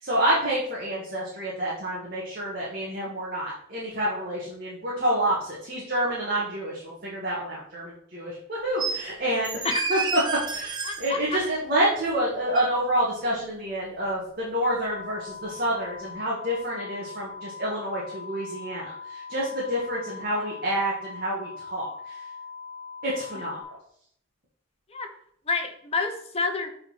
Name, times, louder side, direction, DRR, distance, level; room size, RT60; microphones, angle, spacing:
voice 1, 0.0-10.2 10.5-22.2 23.0-23.6, right 1 dB, 50° right, -6 dB, 1.9 m, -28 dB
sound 1, 8.8-9.0 9.4-11.1 12.5-12.6, right 5 dB, 25° right, 0.9 m, -30 dB
voice 2, 10.8-11.4 24.9-25.1 25.5-26.7, left 4 dB, 30° left, 5 dB, 1.0 m, -28 dB
sound 2, 14.7-23.6, left 5 dB, ahead, 3.5 m, -41 dB
6.8 x 4.4 x 5.7 m, 0.66 s
head